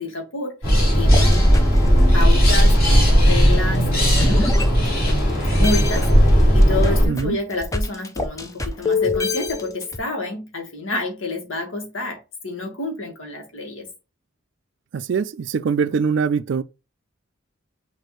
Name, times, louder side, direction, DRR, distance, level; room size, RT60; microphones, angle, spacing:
voice 1, 0.0-1.5 2.1-4.7 5.5-6.1 6.5-13.9, left 2 dB, 80° left, 1.6 m, -29 dB
sound 1, 0.6-7.1, equal, 45° left, 2.8 m, -16 dB
sound 2, 1.1-5.3 5.6-10.0, left 3 dB, 15° left, 0.5 m, -27 dB
voice 2, 14.9-16.6, right 6 dB, 60° right, 0.3 m, -22 dB
6.1 x 2.7 x 3.1 m
head